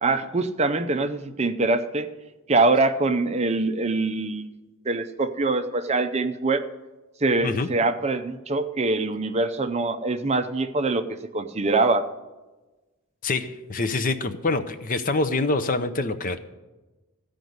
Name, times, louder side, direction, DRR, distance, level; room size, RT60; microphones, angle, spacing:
voice 1, 0.0-2.1 2.5-4.5 4.9-6.6 7.2-11.0 11.3-12.0, right 3 dB, 30° right, 9 dB, 0.5 m, -24 dB
voice 2, 13.2-16.4, left 3 dB, 35° left, 10 dB, 0.6 m, -25 dB
15.0 x 5.1 x 9.4 m, 1.2 s
head